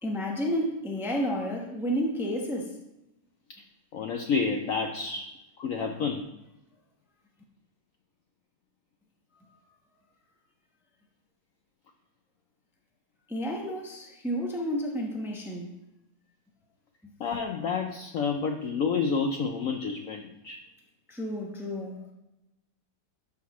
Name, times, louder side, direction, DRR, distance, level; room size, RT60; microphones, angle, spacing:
voice 1, 0.0-2.8 9.3-9.5 13.3-15.8 21.1-22.1, equal, ahead, 0 dB, 0.7 m, -31 dB
voice 2, 3.9-5.3 5.6-6.3 17.2-20.6, left 5 dB, 70° left, 5 dB, 0.8 m, -29 dB
11.5 x 5.8 x 3.1 m, 0.93 s
omnidirectional pair, 1.9 m